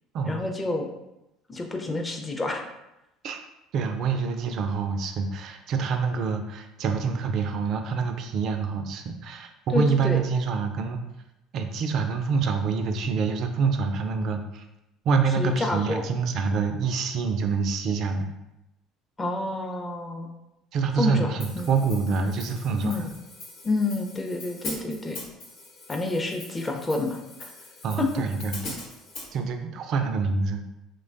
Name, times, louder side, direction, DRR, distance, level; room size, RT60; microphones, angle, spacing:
voice 1, 0.3-0.9 1.5-2.7 9.7-10.2 15.4-16.0 19.2-20.3 21.0-21.3 21.6-21.7 22.8-23.1 23.6-25.2 25.9-27.5 28.0-28.1, left 2 dB, 25° left, 2 dB, 0.5 m, -28 dB
voice 2, 3.7-11.0 11.5-14.7 15.1-18.3 20.7-23.1 27.8-28.7 29.3-30.6, right 5 dB, 55° right, 6 dB, 0.3 m, -26 dB
Hi-hat, 21.4-29.3, left 2 dB, 60° left, 0.9 m, -42 dB
3.0 x 2.1 x 2.5 m, 0.90 s
hypercardioid pair, 70°, 0 cm